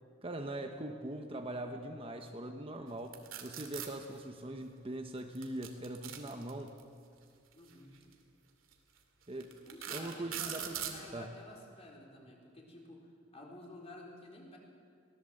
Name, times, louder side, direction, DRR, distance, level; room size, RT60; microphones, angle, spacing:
voice 1, 0.2-6.8 9.3-9.6 9.9-11.4, right 1 dB, 30° right, 5 dB, 1.0 m, -42 dB
sound 1, 3.1-3.9 5.4-6.8 7.9-8.1 8.7-8.8 9.4-11.0, right 9 dB, 85° right, 2.4 m, -41 dB
voice 2, 7.5-7.9 9.7-14.6, left 1 dB, 30° left, -2 dB, 4.4 m, -52 dB
23.0 x 18.0 x 7.8 m, 2.3 s
head